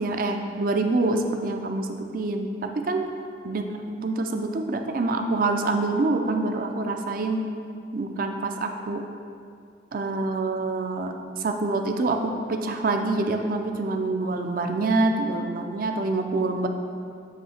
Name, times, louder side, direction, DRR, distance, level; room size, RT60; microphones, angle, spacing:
voice 1, 0.0-3.0 3.4-3.6 4.0-7.4 7.9-9.0 9.9-16.7, right 2 dB, 50° right, 5 dB, 0.4 m, -26 dB
8.1 x 2.7 x 5.7 m, 2.4 s
head